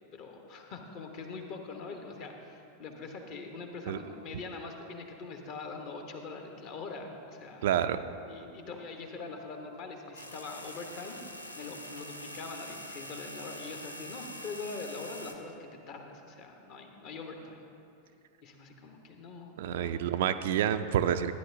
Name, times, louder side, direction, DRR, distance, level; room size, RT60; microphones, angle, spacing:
voice 1, 0.1-7.7 8.3-17.6 18.4-20.1, left 4 dB, 40° left, 4 dB, 1.0 m, -43 dB
voice 2, 7.6-8.0 19.6-21.3, right 10 dB, 55° right, 10 dB, 0.3 m, -28 dB
sound 1, 10.1-15.3, equal, 80° left, 0.6 m, -44 dB
13.5 x 9.4 x 2.7 m, 2.7 s
figure-of-eight pair, 90°, 0 cm